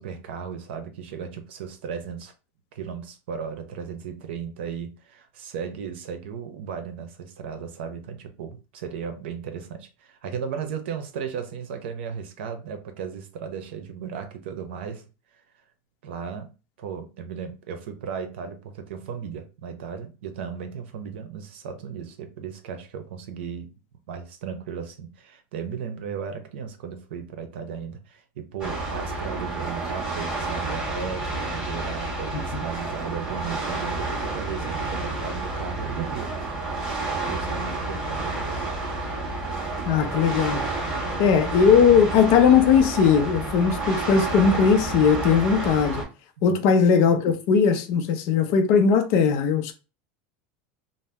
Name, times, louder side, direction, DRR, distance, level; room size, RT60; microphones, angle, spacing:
voice 1, 0.0-2.3 2.7-15.0 16.0-16.5 16.8-23.7 24.1-36.4 37.2-38.7 46.5-46.7, right 7 dB, 85° right, 0.7 m, -35 dB
sound 1, 28.6-46.0, right 2 dB, 15° right, 1.4 m, -30 dB
voice 2, 39.9-40.6 41.2-46.0 46.4-49.7, left 6 dB, 45° left, 0.5 m, -19 dB
2.7 x 2.0 x 3.3 m
supercardioid pair, 175°, 6 cm